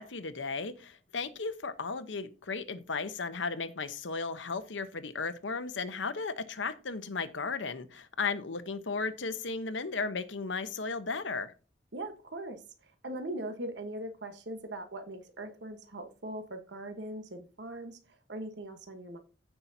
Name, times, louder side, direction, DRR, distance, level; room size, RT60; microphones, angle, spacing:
voice 1, 0.0-11.5, left 4 dB, 90° left, 11 dB, 1.0 m, -35 dB
voice 2, 11.9-19.2, right 1 dB, 70° right, 6 dB, 1.2 m, -41 dB
15.5 x 5.8 x 2.8 m, 0.34 s
head